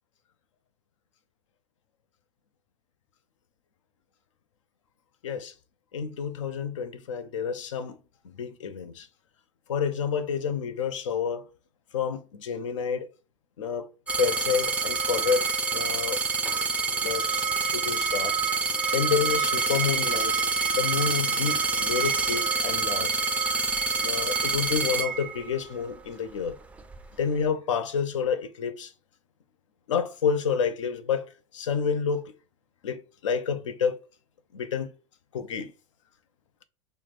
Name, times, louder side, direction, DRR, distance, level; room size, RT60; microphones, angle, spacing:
voice 1, 5.2-5.5 5.9-8.0 8.2-9.1 9.7-11.4 11.9-13.1 13.6-13.9 14.2-16.2 17.0-18.4 18.9-20.3 20.7-23.2 24.0-26.6 27.2-28.9 29.9-32.3 32.8-34.0 34.5-34.9 35.3-35.7, left 6 dB, 80° left, 0.4 m, -29 dB
sound 1, 14.1-25.8 26.5-27.1, right 4 dB, 10° right, 0.3 m, -27 dB
3.4 x 2.0 x 3.0 m
hypercardioid pair, 95°, 16 cm